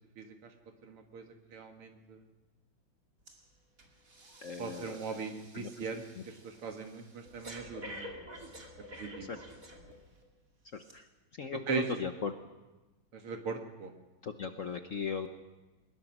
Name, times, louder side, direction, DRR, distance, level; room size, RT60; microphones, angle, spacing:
voice 1, 0.8-2.2 4.6-8.1 9.0-9.3 11.7-11.9 13.1-13.9, right 5 dB, 90° right, 4 dB, 2.8 m, -39 dB
Breathing, 3.3-3.5 3.8-10.2 10.8-10.9, equal, 40° right, 2.8 m, -49 dB
voice 2, 4.4-5.2 5.5-5.9 6.2-6.3 9.3-9.4 10.7-11.1 11.4-12.3 14.2-15.3, left 6 dB, 55° left, 7 dB, 0.9 m, -38 dB
21.5 x 20.5 x 6.1 m, 1.1 s
omnidirectional pair, 2.4 m